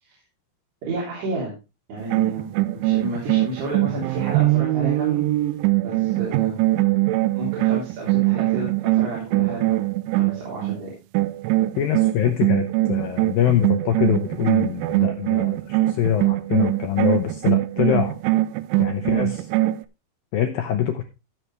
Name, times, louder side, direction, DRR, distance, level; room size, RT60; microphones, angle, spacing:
voice 1, 0.8-1.5 1.9-2.5 2.7-5.2 5.8-6.6 7.3-10.9, right 2 dB, 60° right, -5 dB, 5.5 m, -31 dB
sound 1, 2.0-10.8 11.1-19.8, right 18 dB, 90° right, 3.0 m, -22 dB
voice 2, 11.8-18.2 18.8-19.5 20.3-21.0, left 10 dB, 80° left, 6 dB, 2.1 m, -24 dB
15.5 x 7.1 x 3.3 m, 0.28 s
omnidirectional pair, 5.3 m